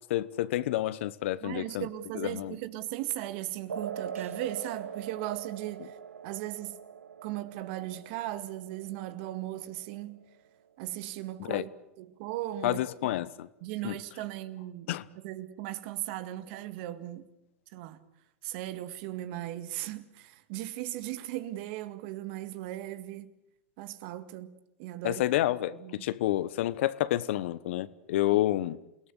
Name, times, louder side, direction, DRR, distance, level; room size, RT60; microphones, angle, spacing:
voice 1, 0.1-1.9 2.1-2.5 11.4-11.7 12.6-13.5 13.8-14.0 14.9-15.0 25.0-28.8, left 14 dB, 65° left, 1.1 m, -29 dB
voice 2, 1.4-6.0 6.2-6.8 7.2-10.2 10.8-11.7 12.0-13.1 13.6-17.3 17.7-18.0 18.4-23.3 23.8-25.2 25.7-26.1 28.3-28.4, right 14 dB, 55° right, 2.0 m, -37 dB
sound 1, 3.7-10.7, right 7 dB, 90° right, 1.0 m, -43 dB
28.5 x 18.0 x 8.2 m
hypercardioid pair, 100°, 7 cm